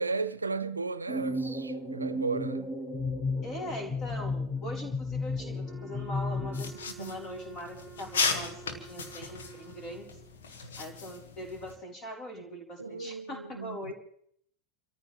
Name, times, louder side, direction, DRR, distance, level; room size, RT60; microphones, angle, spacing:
voice 1, 0.0-2.7 7.0-7.1 10.6-10.8 12.8-13.9, right 4 dB, 80° right, 0.5 m, -35 dB
sound 1, 1.1-6.7, left 2 dB, ahead, 1.3 m, -33 dB
voice 2, 3.4-10.1 10.8-13.9, equal, 35° left, 4.4 m, -41 dB
Wind instrument woodwind instrument, 5.6-10.3, right 8 dB, 25° right, 0.9 m, -50 dB
sound 2, 6.5-11.7, left 5 dB, 65° left, 1.8 m, -36 dB
28.5 x 14.5 x 3.4 m
figure-of-eight pair, 85°, 0 cm